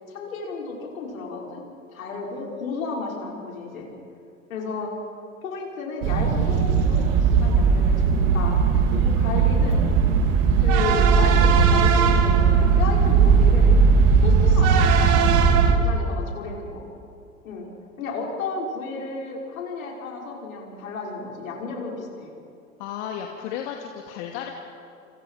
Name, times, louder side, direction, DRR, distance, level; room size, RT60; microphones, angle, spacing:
voice 1, 0.1-1.6 1.9-3.9 4.5-5.0 5.4-8.6 8.9-9.9 10.6-13.8 14.2-16.9 17.4-17.7 18.0-22.3, left 4 dB, 75° left, -1 dB, 6.1 m, -33 dB
sound 1, 6.0-15.7, right 5 dB, 50° right, 2.9 m, -18 dB
voice 2, 22.8-24.5, left 9 dB, 55° left, 2 dB, 2.5 m, -34 dB
29.5 x 27.5 x 5.0 m, 2.6 s
figure-of-eight pair, 85°, 41 cm